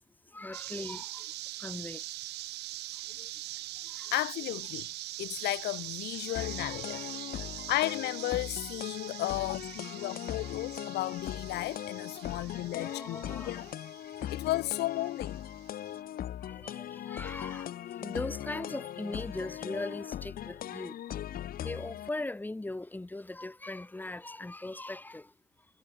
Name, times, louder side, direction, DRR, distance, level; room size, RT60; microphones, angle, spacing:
voice 1, 0.3-1.2 1.6-2.0 3.2-3.3 3.9-4.1 6.3-7.6 9.7-9.9 10.4-10.6 12.3-13.8 15.0-15.1 16.4-17.7 18.0-21.0 21.6-25.3, left 2 dB, 10° left, 4.9 m, -40 dB
sound 1, 0.5-16.0, right 16 dB, 80° right, 3.1 m, -43 dB
voice 2, 4.1-4.9 5.2-7.0 7.7-13.6 14.3-15.4, left 17 dB, 80° left, 1.7 m, -34 dB
sound 2, 6.3-22.1, left 11 dB, 60° left, 2.8 m, -39 dB
cardioid pair, 110°, 17 cm